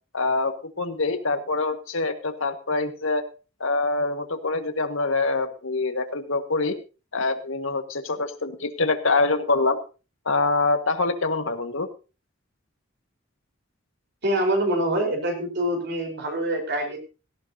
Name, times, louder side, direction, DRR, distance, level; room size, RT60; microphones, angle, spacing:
voice 1, 0.1-3.2 3.6-6.8 7.1-9.8 10.3-11.9, left 3 dB, 75° left, 7 dB, 1.7 m, -25 dB
voice 2, 14.2-17.0, right 1 dB, 55° right, 3 dB, 4.5 m, -25 dB
17.0 x 15.0 x 2.8 m, 0.33 s
head